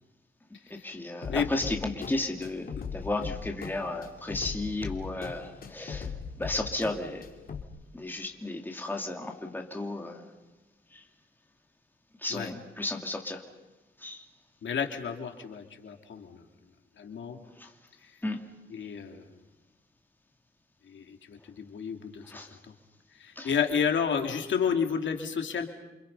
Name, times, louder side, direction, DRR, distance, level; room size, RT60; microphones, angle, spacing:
voice 1, 0.7-7.2 7.9-10.3 10.9-11.0 12.2-13.4 14.0-14.3 17.6-17.7 18.2-18.4 22.2-22.6 23.4-23.5, left 2 dB, 10° left, 2 dB, 2.7 m, -34 dB
sound 1, 1.2-7.6, left 5 dB, 45° left, 2.8 m, -39 dB
voice 2, 14.6-16.4 17.0-17.4 18.0-18.2 18.7-19.4 20.8-22.2 22.7-22.8 23.1-25.7, left 7 dB, 70° left, 4 dB, 2.9 m, -31 dB
29.5 x 26.5 x 5.6 m, 1.1 s
wide cardioid pair, 150°, 20 cm